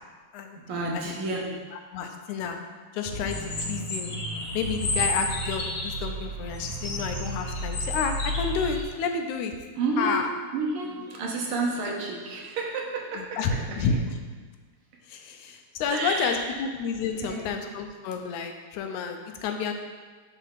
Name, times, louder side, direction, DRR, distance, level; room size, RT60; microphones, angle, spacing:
voice 1, 0.6-1.6 9.7-10.2 10.5-13.9 15.9-16.5 17.2-17.5, right 3 dB, 65° right, -1 dB, 1.4 m, -30 dB
voice 2, 1.9-2.6 2.9-4.1 4.5-9.6 10.0-10.2 13.2-13.5 13.8-14.0 15.1-19.7, left 6 dB, 90° left, 5 dB, 2.1 m, -30 dB
sound 1, 3.1-8.8, left 1 dB, 55° left, 1.3 m, -31 dB
5.8 x 4.1 x 5.7 m, 1.4 s
omnidirectional pair, 3.3 m